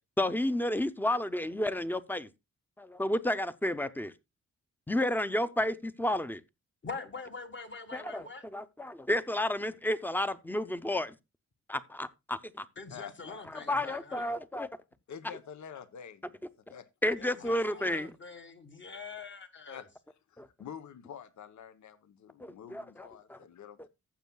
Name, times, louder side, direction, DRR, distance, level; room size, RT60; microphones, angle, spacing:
voice 1, 0.2-2.3 2.8-4.1 4.9-6.4 7.9-11.1 11.7-12.7 13.5-14.7 17.0-18.1 20.4-20.5 22.4-23.4, left 1 dB, 5° left, 0.6 m, -31 dB
voice 2, 6.8-8.4 12.8-14.4 17.2-19.8, left 4 dB, 40° left, 1.7 m, -44 dB
voice 3, 12.9-13.8 15.1-16.4 16.7-16.9 17.7-17.9 19.7-19.9 20.6-23.9, left 8 dB, 75° left, 0.9 m, -47 dB
15.0 x 7.3 x 2.3 m
wide cardioid pair, 115°, 29 cm